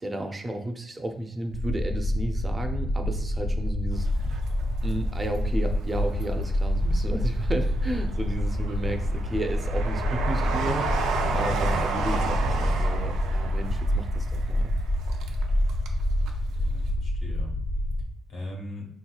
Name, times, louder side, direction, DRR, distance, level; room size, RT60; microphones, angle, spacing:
voice 1, 0.0-4.3 4.8-14.7, right 1 dB, 25° right, 5 dB, 0.4 m, -33 dB
sound 1, 1.5-18.1, left 1 dB, 55° left, 0.3 m, -27 dB
Train, 4.1-5.3 5.8-6.7 7.2-16.0 16.3-16.4, right 4 dB, 90° right, 0.4 m, -32 dB
voice 2, 8.2-8.9 16.5-17.5 18.3-18.9, left 1 dB, 75° left, -2 dB, 1.2 m, -39 dB
3.8 x 2.8 x 2.3 m, 0.70 s
cardioid pair, 90°, 0 cm